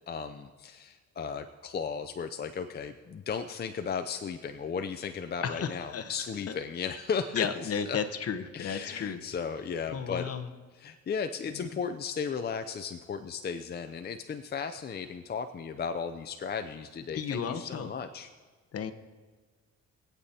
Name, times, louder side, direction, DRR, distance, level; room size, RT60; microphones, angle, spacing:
voice 1, 0.1-8.0 8.5-10.3 10.8-18.3, left 6 dB, 35° left, 7 dB, 0.5 m, -35 dB
voice 2, 5.4-6.1 6.5-6.6 7.3-9.2 9.9-10.5 11.5-11.8 17.1-17.9 18.7-18.9, left 7 dB, 50° left, 10 dB, 0.9 m, -33 dB
22.5 x 8.4 x 2.8 m, 1.4 s
cardioid pair, 90°, 30 cm